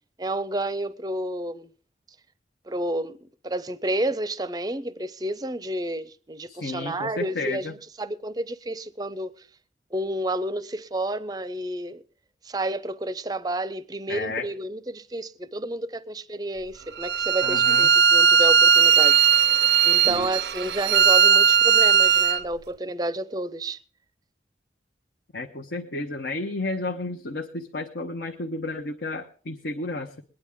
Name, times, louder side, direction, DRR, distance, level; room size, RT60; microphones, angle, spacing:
voice 1, 0.2-1.7 2.7-3.2 3.4-7.6 8.0-9.4 9.9-12.0 12.4-23.8, right 1 dB, 20° right, 0.5 m, -30 dB
voice 2, 6.5-7.7 14.1-14.5 17.4-17.9 20.0-20.4 25.3-30.2, left 2 dB, 75° left, 0.9 m, -32 dB
Bowed string instrument, 17.0-22.4, right 7 dB, 75° right, 0.5 m, -18 dB
22.0 x 9.9 x 3.6 m
head